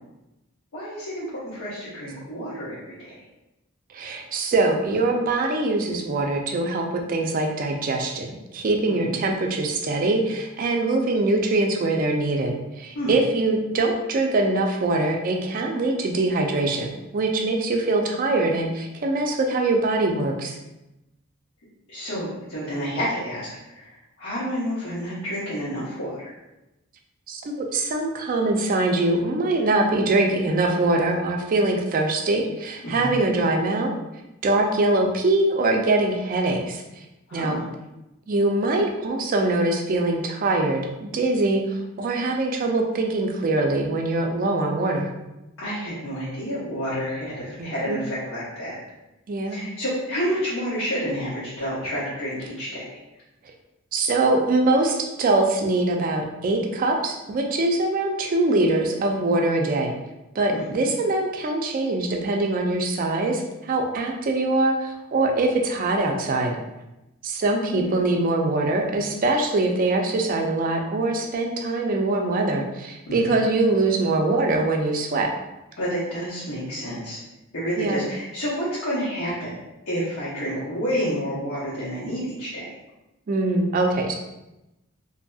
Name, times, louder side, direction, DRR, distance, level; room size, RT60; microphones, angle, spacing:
voice 1, 0.7-3.2 8.9-9.1 12.9-13.1 21.9-23.9 24.2-26.3 32.8-33.1 37.3-37.6 45.6-48.8 49.5-53.0 60.5-60.8 67.7-67.9 73.1-73.3 75.8-77.2 77.5-79.6 79.9-82.8, equal, 85° left, -10 dB, 0.9 m, -29 dB
voice 2, 3.9-16.9 17.1-20.6 27.3-33.9 34.4-36.8 37.3-37.6 38.3-45.1 47.6-48.0 49.3-49.6 53.9-59.9 60.4-66.6 67.2-75.3 77.8-78.0 83.3-84.1, right 2 dB, 40° right, 2 dB, 0.4 m, -23 dB
2.7 x 2.6 x 2.3 m, 0.97 s
head